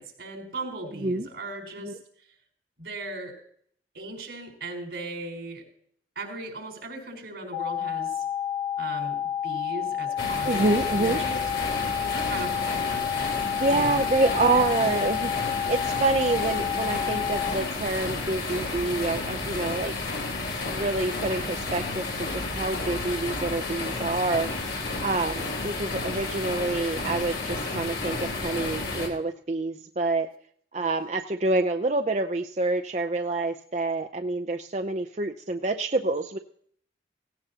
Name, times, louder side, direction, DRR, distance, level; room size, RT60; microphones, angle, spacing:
voice 1, 0.0-2.0 2.8-3.3 3.9-5.6 6.1-8.2 8.8-11.3 12.0-12.8 13.7-14.0 14.5-14.7, right 2 dB, 80° right, 0 dB, 4.4 m, -37 dB
sound 1, 7.5-17.5, left 9 dB, 70° left, 5.2 m, -30 dB
sound 2, 10.2-29.1, left 3 dB, 90° left, 3.8 m, -31 dB
voice 2, 10.5-11.2 13.6-19.9 20.6-22.0 22.3-24.5 25.0-30.3 30.7-36.4, right 2 dB, 40° right, 5 dB, 0.5 m, -27 dB
17.0 x 16.5 x 2.8 m, 0.62 s
head